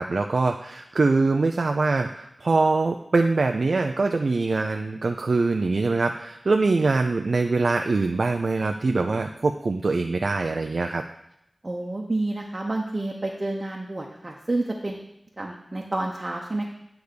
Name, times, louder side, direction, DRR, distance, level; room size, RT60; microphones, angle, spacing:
voice 1, 0.0-11.0, right 3 dB, 75° right, 4 dB, 0.4 m, -23 dB
voice 2, 11.6-15.0 15.4-16.7, right 2 dB, 40° right, 0 dB, 0.9 m, -29 dB
9.5 x 3.5 x 6.6 m, 0.80 s
wide cardioid pair, 45°, 0 cm